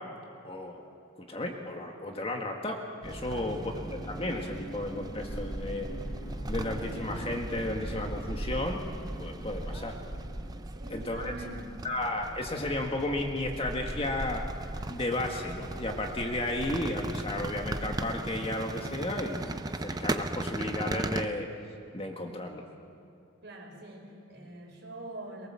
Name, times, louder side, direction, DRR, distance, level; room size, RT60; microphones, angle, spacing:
voice 1, 0.4-0.8 1.2-3.6 4.1-5.9 6.5-8.8 9.2-10.0 10.9-11.3 11.8-14.4 14.9-21.5 21.9-22.6, left 1 dB, 25° left, 2 dB, 1.8 m, -33 dB
sound 1, 3.0-21.3, right 1 dB, 20° right, 0.6 m, -37 dB
voice 2, 3.3-3.8 10.7-11.9 23.4-25.5, right 1 dB, 55° right, -1 dB, 5.5 m, -44 dB
sound 2, 3.8-11.4, equal, 60° left, 1.6 m, -46 dB
22.5 x 22.5 x 7.6 m, 2.6 s
head